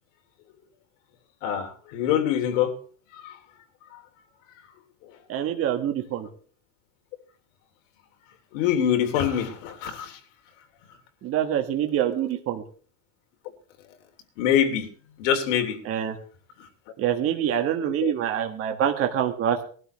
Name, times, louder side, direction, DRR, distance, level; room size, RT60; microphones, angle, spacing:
voice 1, 1.4-2.7 3.2-3.3 8.5-10.1 14.4-14.9 15.2-15.8 18.0-18.1, left 9 dB, 70° left, 4 dB, 3.1 m, -24 dB
voice 2, 5.3-6.3 11.2-12.6 15.8-16.2 17.0-19.7, right 10 dB, 35° right, 4 dB, 1.7 m, -25 dB
21.0 x 12.5 x 3.2 m, 0.43 s
supercardioid pair, 155°, 40 cm